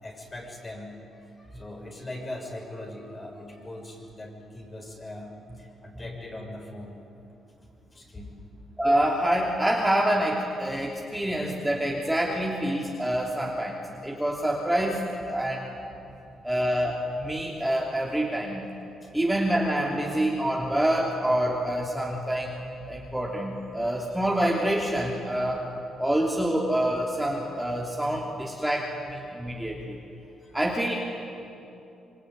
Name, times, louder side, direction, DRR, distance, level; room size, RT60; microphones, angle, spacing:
voice 1, 0.0-7.0 7.9-8.4 19.0-19.1 30.4-30.6, left 1 dB, 30° left, 1 dB, 6.8 m, -41 dB
voice 2, 8.8-15.7 16.4-18.6 19.1-25.7 26.0-30.0 30.5-30.9, right 1 dB, 5° right, -2 dB, 3.1 m, -26 dB
26.0 x 24.0 x 9.7 m, 2.8 s
cardioid pair, 90°, 0 cm